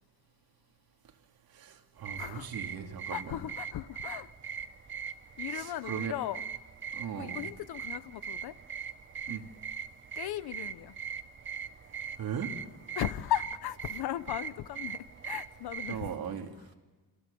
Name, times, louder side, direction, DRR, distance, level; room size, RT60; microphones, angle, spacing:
voice 1, 1.5-3.4 5.5-6.1 6.9-7.5 9.3-9.4 12.2-12.5 15.9-16.5, right 7 dB, 70° right, 2.7 m, -38 dB
sound 1, 2.0-16.1, right 7 dB, 30° right, 0.8 m, -41 dB
voice 2, 2.2-2.5 3.1-4.3 5.4-6.4 7.2-8.5 9.3-9.4 10.2-11.0 13.0-16.0, left 13 dB, 85° left, 1.0 m, -36 dB
29.0 x 26.0 x 6.9 m
cardioid pair, 145°, 37 cm